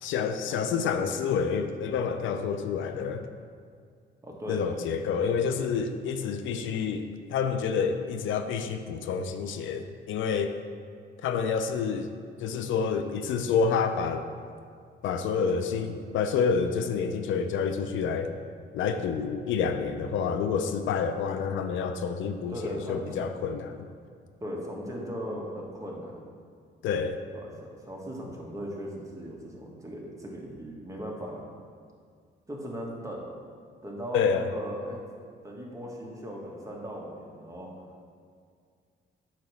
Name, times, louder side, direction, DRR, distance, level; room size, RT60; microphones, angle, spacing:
voice 1, 0.0-3.3 4.5-10.6 11.2-12.1 12.4-14.3 15.0-18.3 18.7-23.8 26.8-27.2 34.1-34.5, left 6 dB, 80° left, 8 dB, 0.5 m, -28 dB
voice 2, 4.2-4.8 5.2-5.3 22.4-23.3 24.4-26.2 27.3-31.4 32.5-33.3 33.8-35.0 35.4-37.7, equal, 15° right, -2 dB, 1.4 m, -38 dB
8.4 x 3.0 x 6.2 m, 2.1 s
cardioid pair, 90°, 20 cm